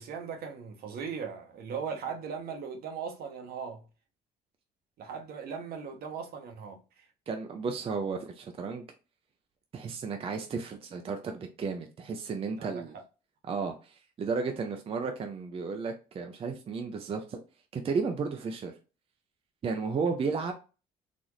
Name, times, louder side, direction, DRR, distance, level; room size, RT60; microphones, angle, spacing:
voice 1, 0.0-3.8 5.0-7.1 12.6-13.0, right 6 dB, 65° right, 1.0 m, -38 dB
voice 2, 7.3-8.8 9.7-12.9 13.5-17.4 17.7-18.7 19.6-20.5, right 5 dB, 35° right, 0.5 m, -33 dB
4.0 x 2.6 x 3.0 m
cardioid pair, 110°, 17 cm